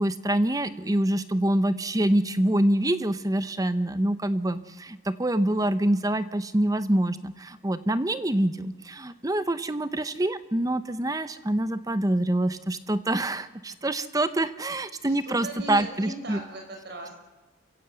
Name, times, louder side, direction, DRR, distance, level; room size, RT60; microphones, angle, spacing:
voice 1, 0.0-16.4, right 1 dB, 20° right, 13 dB, 0.8 m, -26 dB
voice 2, 5.5-6.0 15.0-17.1, right 1 dB, 55° right, 2 dB, 6.1 m, -39 dB
27.5 x 15.5 x 8.2 m, 1.1 s
head